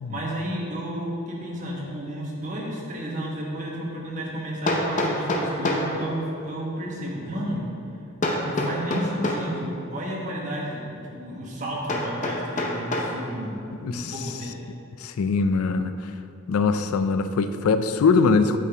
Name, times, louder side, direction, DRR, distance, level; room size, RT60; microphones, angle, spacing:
voice 1, 0.1-7.6 8.4-14.5, equal, 35° right, -3 dB, 1.3 m, -32 dB
Hammer, 3.1-3.2 4.7-5.9 8.2-9.5 11.9-13.2, left 1 dB, 35° left, 0.7 m, -26 dB
voice 2, 13.8-14.1 15.0-15.9 16.5-18.6, left 4 dB, 85° left, 10 dB, 0.4 m, -22 dB
8.3 x 6.0 x 3.4 m, 2.8 s
head